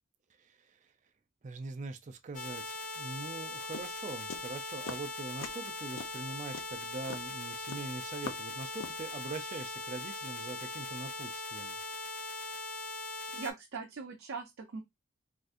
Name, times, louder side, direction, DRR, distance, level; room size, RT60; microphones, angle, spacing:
voice 1, 0.4-0.9 1.4-11.8, right 3 dB, 35° right, 0.4 m, -43 dB
sound 1, 2.3-13.5, left 2 dB, 40° left, 0.6 m, -40 dB
sound 2, 3.7-5.1 5.4-5.7 6.0-9.1, left 5 dB, 85° left, 0.5 m, -42 dB
voice 2, 13.3-14.8, right 4 dB, 85° right, 0.6 m, -40 dB
3.6 x 2.6 x 2.5 m
head